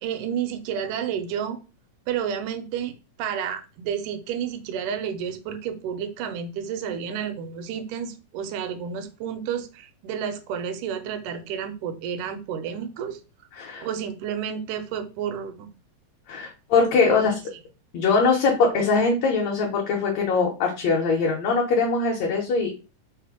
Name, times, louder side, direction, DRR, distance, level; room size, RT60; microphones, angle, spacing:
voice 1, 0.0-1.6 2.1-13.2 13.8-15.7 17.1-17.2, right 8 dB, 80° right, 2.1 m, -31 dB
voice 2, 13.5-13.9 16.3-17.3 17.9-22.7, left 4 dB, 70° left, 1.8 m, -22 dB
5.0 x 2.1 x 4.7 m
omnidirectional pair, 3.7 m